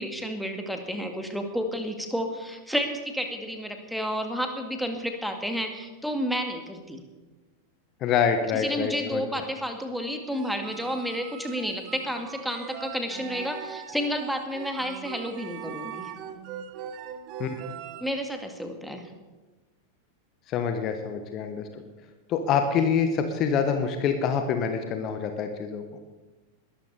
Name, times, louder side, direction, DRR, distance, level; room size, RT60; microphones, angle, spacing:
voice 1, 0.0-7.0 8.5-16.1 18.0-19.0, equal, ahead, 5 dB, 2.0 m, -31 dB
voice 2, 8.0-9.2 17.4-17.6 20.5-21.8 22.3-25.8, left 6 dB, 35° left, 6 dB, 1.4 m, -26 dB
sound 1, 10.3-18.1, right 9 dB, 40° right, 1.1 m, -41 dB
21.0 x 13.0 x 4.2 m, 1.2 s
figure-of-eight pair, 90°, 0 cm